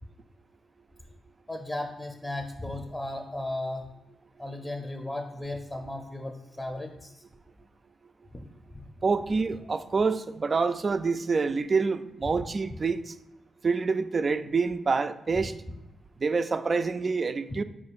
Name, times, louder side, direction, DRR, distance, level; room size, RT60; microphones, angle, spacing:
voice 1, 1.5-3.9 4.4-7.2 8.3-8.4 8.7-8.9 12.7-12.8, left 1 dB, 15° left, 3 dB, 0.6 m, -35 dB
voice 2, 9.0-13.1 13.6-15.5 16.2-17.6, right 4 dB, 50° right, 11 dB, 0.3 m, -27 dB
4.1 x 2.5 x 4.6 m, 0.97 s
supercardioid pair, 45°, 0 cm